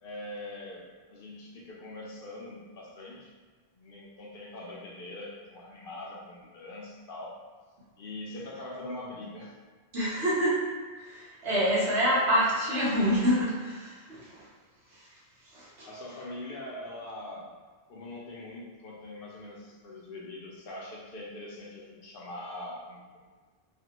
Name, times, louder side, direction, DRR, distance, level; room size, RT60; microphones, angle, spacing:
voice 1, 0.0-3.3 3.7-7.4 8.0-9.5 15.8-17.5 17.9-23.2, left 1 dB, 65° left, -3 dB, 0.8 m, -42 dB
voice 2, 9.9-10.7 11.0-14.4 15.5-15.9, equal, 85° right, -8 dB, 1.3 m, -27 dB
3.2 x 2.2 x 2.9 m, 1.5 s
omnidirectional pair, 1.0 m